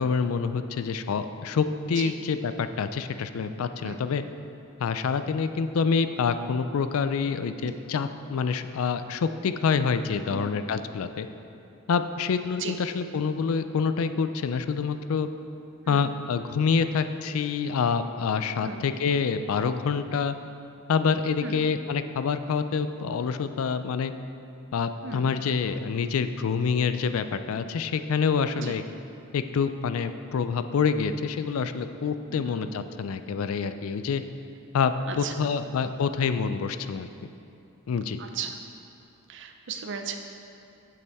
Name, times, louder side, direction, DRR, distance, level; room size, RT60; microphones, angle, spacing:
voice 1, 0.0-4.2 4.8-11.3 11.9-15.3 15.9-20.3 20.9-24.1 24.7-28.8 29.3-34.2 34.7-37.1 37.9-38.2, left 5 dB, 80° left, 10 dB, 0.4 m, -27 dB
voice 2, 32.3-32.6 35.1-35.5 38.2-38.6 39.3-40.2, right 6 dB, 60° right, 5 dB, 0.5 m, -36 dB
8.2 x 7.0 x 3.5 m, 2.7 s
head